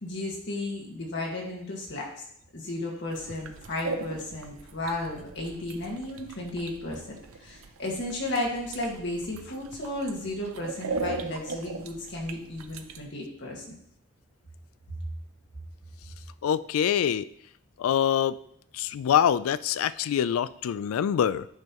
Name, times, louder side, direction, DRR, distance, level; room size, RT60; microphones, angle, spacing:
voice 1, 0.0-2.1 2.5-7.0 7.4-13.6, left 1 dB, 60° left, -2 dB, 1.7 m, -33 dB
sound 1, 3.1-13.0, right 4 dB, 80° right, 0.6 m, -39 dB
voice 2, 16.4-17.2 17.8-18.4 18.7-21.5, left 9 dB, 80° left, 17 dB, 0.3 m, -25 dB
9.0 x 5.5 x 3.0 m, 0.69 s
head